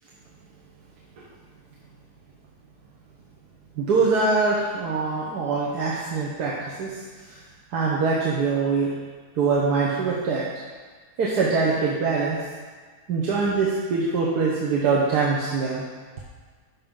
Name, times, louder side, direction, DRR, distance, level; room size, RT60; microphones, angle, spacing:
voice 1, 3.7-7.4 7.7-8.9 9.3-10.5 11.2-12.5 13.1-15.8, right 4 dB, 85° right, -5 dB, 1.5 m, -23 dB
11.5 x 5.4 x 3.8 m, 1.5 s
omnidirectional pair, 1.7 m